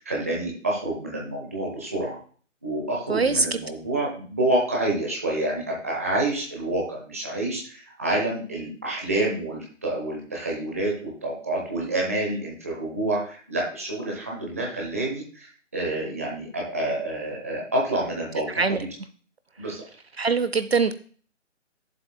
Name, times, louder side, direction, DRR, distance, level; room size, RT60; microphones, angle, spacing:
voice 1, 0.0-2.2 2.6-18.9 19.6-19.8, right 1 dB, 10° right, -2 dB, 0.9 m, -28 dB
voice 2, 3.1-3.6 18.6-18.8 20.2-20.9, right 4 dB, 55° right, 13 dB, 0.6 m, -22 dB
12.5 x 7.5 x 2.2 m, 0.44 s
hypercardioid pair, 170°, 38 cm